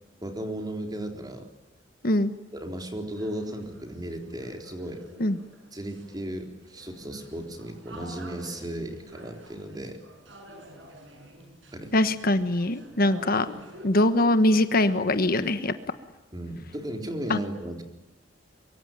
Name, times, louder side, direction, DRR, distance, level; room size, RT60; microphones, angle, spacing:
voice 1, 0.2-1.5 2.5-5.0 5.7-10.0 11.7-11.9 16.3-17.8, right 1 dB, 20° right, 4 dB, 3.8 m, -35 dB
sound 1, 3.2-14.2, equal, 85° right, 6.9 m, -48 dB
voice 2, 11.9-13.5 13.8-15.7 17.3-17.4, left 1 dB, 50° left, 10 dB, 1.3 m, -22 dB
24.0 x 23.5 x 9.1 m, 1.0 s
head